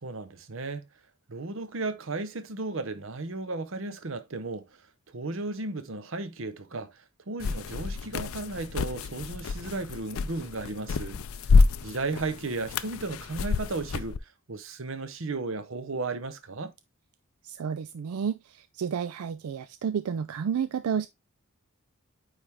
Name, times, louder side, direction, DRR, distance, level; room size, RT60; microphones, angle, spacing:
voice 1, 0.0-0.9 1.3-4.6 5.1-11.2 11.5-11.6 11.8-14.2 14.5-16.7, right 3 dB, 60° right, 0.8 m, -34 dB
sound 1, 7.4-14.2, left 4 dB, 70° left, 0.4 m, -27 dB
voice 2, 17.4-21.1, right 7 dB, 85° right, 0.4 m, -31 dB
8.9 x 3.4 x 3.5 m
head